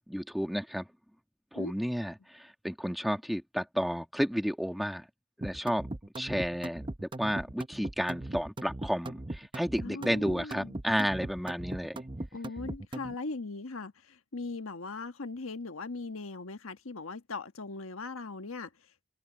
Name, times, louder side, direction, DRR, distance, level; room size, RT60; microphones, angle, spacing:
voice 1, 0.1-0.9 1.5-5.1 5.4-5.9 6.2-12.0, equal, ahead, 1.7 m, -32 dB
sound 1, 5.4-13.1, right 1 dB, 25° right, 0.7 m, -39 dB
voice 2, 9.8-10.7 12.3-13.9 14.3-18.7, left 3 dB, 90° left, 1.4 m, -39 dB
head